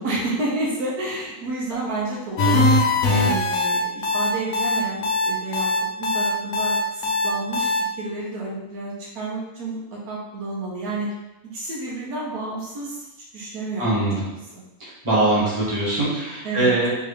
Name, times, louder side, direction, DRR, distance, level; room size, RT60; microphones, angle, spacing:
voice 1, 0.0-2.7 3.0-5.7 6.0-11.1 11.5-13.0 13.3-14.0 14.5-14.6 16.4-17.0, right 2 dB, 75° right, -5 dB, 1.4 m, -30 dB
sound 1, 2.4-7.8, left 2 dB, 60° left, 1.0 m, -21 dB
voice 2, 13.8-14.1 14.8-17.0, right 2 dB, 20° right, -8 dB, 1.4 m, -22 dB
3.9 x 3.3 x 3.4 m, 0.98 s
omnidirectional pair, 1.6 m